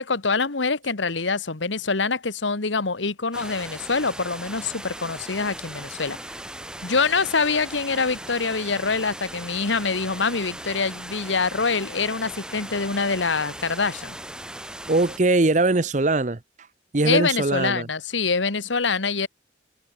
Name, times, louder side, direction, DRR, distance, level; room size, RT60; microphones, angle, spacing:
voice 1, 0.0-6.2 6.8-14.2 17.0-19.3, left 4 dB, 85° left, 1.6 m, -25 dB
sound 1, 3.3-15.2, right 1 dB, 5° right, 2.5 m, -38 dB
voice 2, 14.9-16.4 16.9-17.9, right 2 dB, 40° right, 0.8 m, -21 dB
head